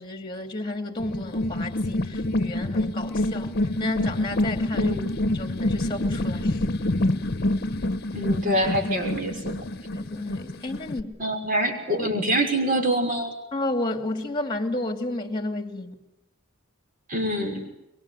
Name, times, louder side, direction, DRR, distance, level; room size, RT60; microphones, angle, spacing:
voice 1, 0.0-3.5 3.8-5.0 5.3-6.6 9.9-11.1 11.9-12.1 13.5-16.0, left 2 dB, 25° left, 6 dB, 2.6 m, -31 dB
sound 1, 1.0-11.0, left 1 dB, 50° left, 1.2 m, -27 dB
voice 2, 4.7-5.2 8.1-9.5 11.2-13.3 17.1-17.6, right 1 dB, 40° right, 3 dB, 6.1 m, -25 dB
24.5 x 23.5 x 9.8 m, 0.90 s
head